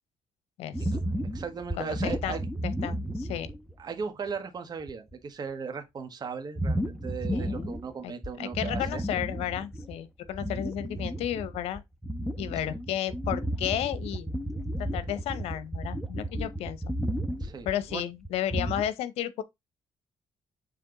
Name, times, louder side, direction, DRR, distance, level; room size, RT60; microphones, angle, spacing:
voice 1, 0.6-0.9 1.8-3.5 7.3-7.7 8.0-8.1 8.4-11.8 12.4-14.3 14.8-16.8 17.6-19.4, left 11 dB, 85° left, 0.8 m, -33 dB
sound 1, 0.7-3.8 4.3-4.4 4.8-5.1 6.6-7.9 8.2-10.0 10.3-18.9, equal, 5° left, 0.9 m, -33 dB
voice 2, 1.3-2.4 3.8-9.0 12.5-12.8 17.4-18.0, right 5 dB, 40° right, 1.5 m, -37 dB
7.0 x 3.4 x 3.9 m
cardioid pair, 100°, 10 cm